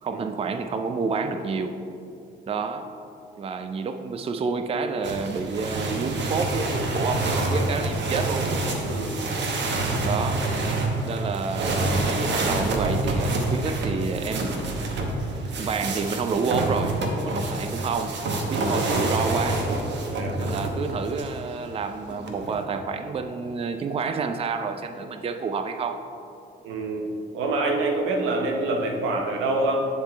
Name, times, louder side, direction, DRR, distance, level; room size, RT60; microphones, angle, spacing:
voice 1, 0.0-1.8 2.5-2.9 3.4-8.5 10.0-10.5 11.0-14.7 15.6-18.2 18.5-19.7 20.4-26.0, right 4 dB, 30° right, 7 dB, 0.4 m, -29 dB
sound 1, 5.0-21.4 22.1-22.8, right 2 dB, 65° right, 1.0 m, -27 dB
voice 2, 8.8-9.2 18.6-18.8 20.1-20.4 26.6-29.8, right 2 dB, 90° right, 3 dB, 0.9 m, -26 dB
9.6 x 3.7 x 4.5 m, 2.6 s
cardioid pair, 90°, 20 cm